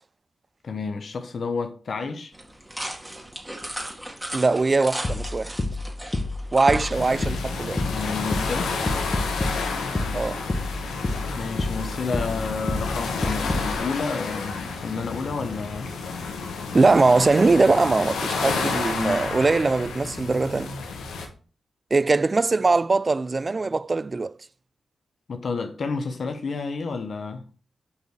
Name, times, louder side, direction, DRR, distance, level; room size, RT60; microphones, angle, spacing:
voice 1, 0.6-2.3 7.9-8.8 11.4-15.9 19.0-19.3 25.3-27.4, left 4 dB, 65° left, 0.9 m, -30 dB
sound 1, 2.3-7.5, right 1 dB, 10° right, 2.2 m, -36 dB
voice 2, 4.3-5.5 6.5-7.8 10.1-10.4 16.7-20.7 21.9-24.4, right 3 dB, 40° right, 0.3 m, -21 dB
sound 2, 5.0-13.8, left 2 dB, 35° left, 1.7 m, -29 dB
sound 3, 6.9-21.3, left 4 dB, 90° left, 1.2 m, -31 dB
6.7 x 5.3 x 4.6 m
supercardioid pair, 45°, 0 cm